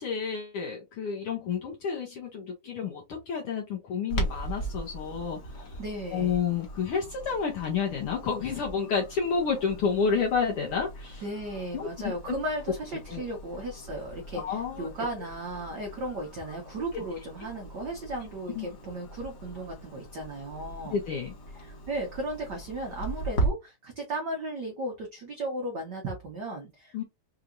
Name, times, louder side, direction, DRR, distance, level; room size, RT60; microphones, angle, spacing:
voice 1, 0.0-5.8 6.1-11.2 11.7-12.4 13.1-13.2 14.3-14.9 16.9-17.0 18.6-18.7 20.9-21.3 26.9-27.0, left 6 dB, 75° left, 1.3 m, -30 dB
Clock, 4.1-23.5, right 2 dB, 55° left, 1.2 m, -39 dB
voice 2, 5.8-6.4 11.2-20.9 21.6-27.0, right 1 dB, 80° right, 0.9 m, -35 dB
4.7 x 2.9 x 2.5 m
omnidirectional pair, 3.4 m